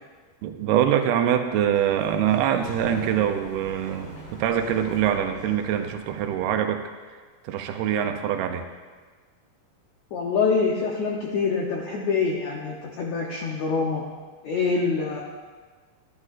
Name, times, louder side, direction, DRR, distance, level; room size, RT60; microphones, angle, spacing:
voice 1, 0.4-6.9 7.4-8.6, right 10 dB, 80° right, 6 dB, 2.4 m, -24 dB
Sliding door, 1.4-6.6, equal, 35° left, 2.7 m, -42 dB
voice 2, 10.1-14.0 14.4-15.2, left 4 dB, 85° left, -2 dB, 1.6 m, -25 dB
12.5 x 12.0 x 2.5 m, 1.4 s
omnidirectional pair, 4.5 m